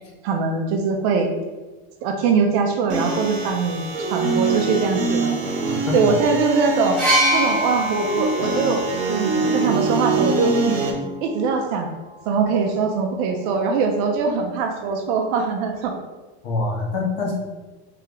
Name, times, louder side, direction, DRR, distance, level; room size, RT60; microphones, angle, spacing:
voice 1, 0.2-1.3 2.0-5.3 5.9-7.0 7.3-8.8 9.1-10.5 11.2-11.9 12.2-15.9, right 5 dB, 50° right, 3 dB, 0.6 m, -22 dB
sound 1, 2.9-10.9, right 3 dB, 75° right, 1.0 m, -24 dB
voice 2, 5.7-6.1 16.4-17.3, left 3 dB, 45° left, -2 dB, 1.0 m, -25 dB
sound 2, 7.0-10.8 11.8-12.0, right 1 dB, 5° left, 1.1 m, -25 dB
3.3 x 3.1 x 3.7 m, 1.2 s
cardioid pair, 170°, 31 cm